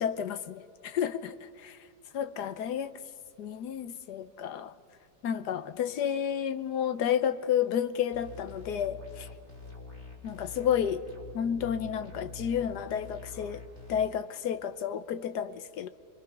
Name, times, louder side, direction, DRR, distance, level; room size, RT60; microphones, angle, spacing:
voice 1, 0.0-1.8 2.1-2.9 3.4-4.7 5.2-9.3 10.2-11.0 11.3-13.6 13.9-15.9, left 9 dB, 65° left, 12 dB, 1.2 m, -31 dB
sound 1, 8.1-14.1, left 4 dB, 35° left, 4.0 m, -45 dB
26.0 x 23.0 x 6.0 m, 2.2 s
omnidirectional pair, 2.1 m